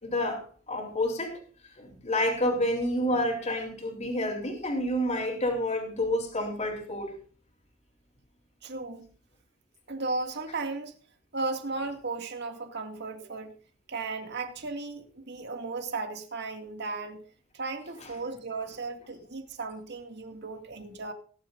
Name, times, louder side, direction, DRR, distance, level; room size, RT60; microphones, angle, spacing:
voice 1, 0.0-1.4 1.8-7.2 18.0-18.1, left 1 dB, 35° left, 3.7 m, -29 dB
voice 2, 8.6-9.1 9.9-10.9 11.3-13.5 13.9-17.2 17.5-21.1, right 3 dB, 55° right, 2.2 m, -35 dB
19.0 x 11.0 x 2.6 m
head